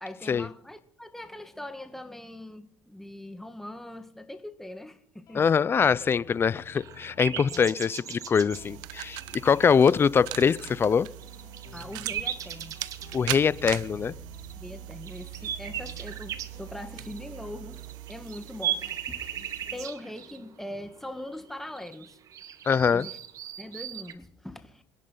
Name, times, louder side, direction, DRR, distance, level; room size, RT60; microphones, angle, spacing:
voice 1, 0.0-5.5 7.4-7.7 11.7-12.8 14.5-17.8 18.1-19.3 19.6-22.2 22.9-23.2 23.6-24.8, left 1 dB, 5° left, 1.7 m, -41 dB
Guitar, 5.3-22.5, left 8 dB, 60° left, 3.3 m, -54 dB
voice 2, 5.3-11.1 13.1-14.1 22.7-23.1, left 6 dB, 35° left, 0.7 m, -23 dB
sound 1, 6.7-10.9 11.2-13.8 14.3-14.7 15.0-24.1, right 10 dB, 55° right, 1.4 m, -38 dB
sound 2, 8.5-19.9, right 18 dB, 80° right, 0.6 m, -40 dB
27.0 x 10.5 x 4.0 m
supercardioid pair, 85°, 7 cm